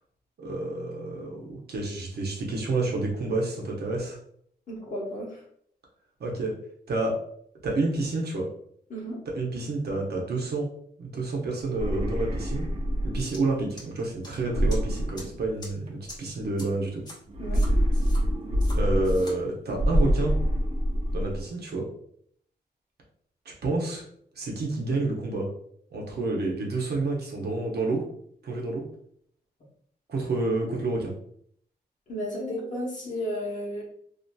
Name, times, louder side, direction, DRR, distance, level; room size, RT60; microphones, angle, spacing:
voice 1, 0.4-4.2 6.2-6.6 6.9-7.2 7.6-8.5 9.3-10.7 11.0-12.7 13.0-17.0 18.8-20.3 21.1-21.9 23.5-24.0 24.4-25.5 25.9-28.1 28.4-28.8 30.1-31.1, right 2 dB, 70° right, -1 dB, 0.7 m, -29 dB
voice 2, 4.7-5.4 8.9-9.2 17.4-17.6 32.1-33.8, equal, 50° left, -5 dB, 1.1 m, -33 dB
sound 1, 11.6-13.5 14.4-15.9 17.3-19.4 19.7-21.4, equal, 40° right, 0.4 m, -26 dB
sound 2, 13.3-13.4 13.8-14.3 14.7-14.8 15.1-15.2 15.6-15.7 16.1-16.2 16.6-16.7 17.0-17.1 17.5-18.2 18.6-18.8 19.0-19.3, left 1 dB, 25° left, 0.8 m, -43 dB
2.6 x 2.5 x 2.2 m, 0.66 s
wide cardioid pair, 155°, 17 cm